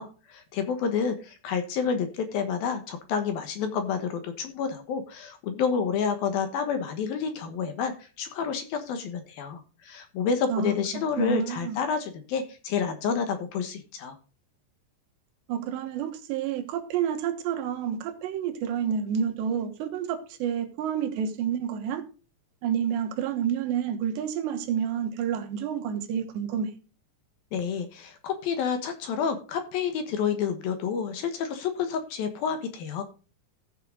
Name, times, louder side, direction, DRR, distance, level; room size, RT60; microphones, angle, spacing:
voice 1, 0.0-14.2 27.5-33.0, left 6 dB, 65° left, 2.7 m, -29 dB
voice 2, 11.2-11.8 15.5-22.1 22.6-26.7, right 8 dB, 80° right, 3.4 m, -29 dB
15.0 x 6.7 x 3.8 m
omnidirectional pair, 5.0 m